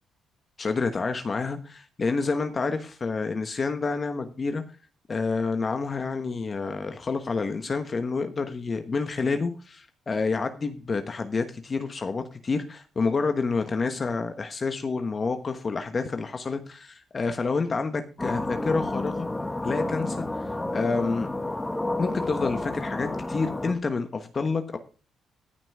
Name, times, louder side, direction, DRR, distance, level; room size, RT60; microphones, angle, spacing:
voice 1, 0.6-4.6 5.1-19.3 19.6-21.3 22.0-24.8, left 4 dB, 35° left, 7 dB, 1.2 m, -28 dB
sound 1, 18.2-23.7, left 2 dB, 15° left, 1.5 m, -30 dB
14.0 x 6.0 x 4.9 m, 0.36 s
cardioid pair, 90°, 0 cm